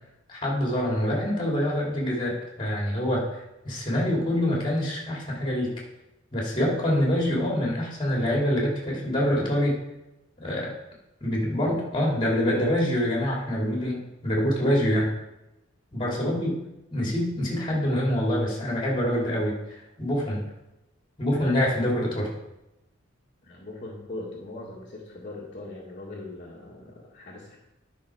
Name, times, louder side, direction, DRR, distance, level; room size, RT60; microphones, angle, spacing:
voice 1, 0.3-5.7 6.3-9.8 10.4-10.7 11.2-15.1 15.9-16.5 16.9-19.6 20.0-20.5 21.2-22.3, equal, 25° left, -3 dB, 2.8 m, -25 dB
voice 2, 16.1-16.5 23.4-27.6, left 2 dB, 45° left, -5 dB, 1.8 m, -40 dB
10.5 x 5.9 x 4.9 m, 0.93 s
head